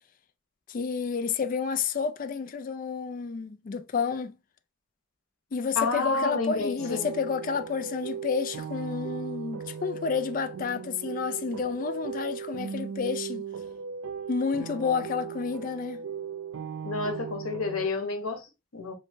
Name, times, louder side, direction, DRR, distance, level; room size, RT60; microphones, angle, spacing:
voice 1, 0.7-4.4 5.5-13.4 14.3-16.0, left 5 dB, 40° left, 0.3 m, -30 dB
voice 2, 5.7-7.1 16.8-18.9, left 3 dB, 85° left, 1.0 m, -30 dB
sound 1, 6.8-17.9, right 6 dB, 70° right, 0.3 m, -37 dB
3.2 x 3.1 x 2.5 m
head